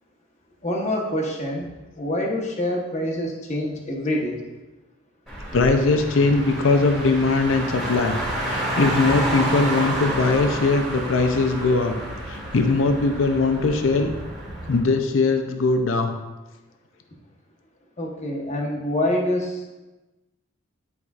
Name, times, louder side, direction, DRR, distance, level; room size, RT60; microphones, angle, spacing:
voice 1, 0.6-1.7 2.0-4.4 18.0-19.6, left 1 dB, 35° left, -1 dB, 1.0 m, -26 dB
Car, 5.3-14.8, right 1 dB, ahead, 1.8 m, -29 dB
voice 2, 5.5-8.2 8.4-11.9 12.2-14.1 14.7-16.1, left 3 dB, 70° left, 6 dB, 0.5 m, -20 dB
9.7 x 4.8 x 2.4 m, 1.1 s
head